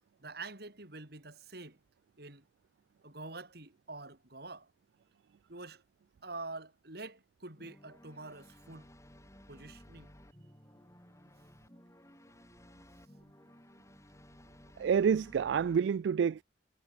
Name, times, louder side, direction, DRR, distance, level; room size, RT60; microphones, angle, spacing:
voice 1, 0.2-1.8 2.2-2.5 3.0-4.7 5.5-5.8 6.2-8.9 9.5-10.1, right 3 dB, 60° right, 5.4 m, -46 dB
sound 1, 7.6-15.8, equal, 15° left, 5.3 m, -57 dB
voice 2, 14.8-16.4, right 7 dB, 80° right, 0.3 m, -28 dB
head